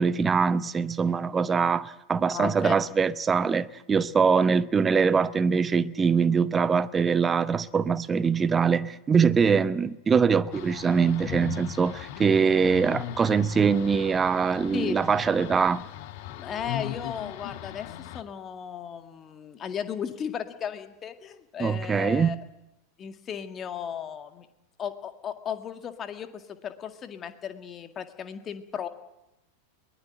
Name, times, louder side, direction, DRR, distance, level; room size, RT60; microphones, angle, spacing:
voice 1, 0.0-15.8 21.6-22.4, right 5 dB, 20° right, 0.8 m, -23 dB
voice 2, 2.3-2.8 14.7-14.9 16.4-22.4 23.0-24.5 24.8-28.9, left 8 dB, 25° left, 1.9 m, -35 dB
sound 1, 10.5-18.2, left 12 dB, 45° left, 1.2 m, -38 dB
22.5 x 19.5 x 9.1 m
figure-of-eight pair, 90°, 0 cm